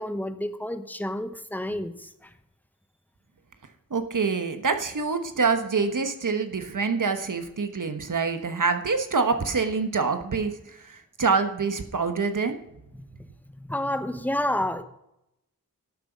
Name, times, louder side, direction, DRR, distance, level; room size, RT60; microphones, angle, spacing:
voice 1, 0.0-2.3 12.9-13.1 13.5-14.8, left 1 dB, 5° left, 10 dB, 1.0 m, -30 dB
voice 2, 3.9-12.6, right 4 dB, 55° right, 7 dB, 1.2 m, -26 dB
12.0 x 7.9 x 5.2 m, 0.85 s
cardioid pair, 55°, 37 cm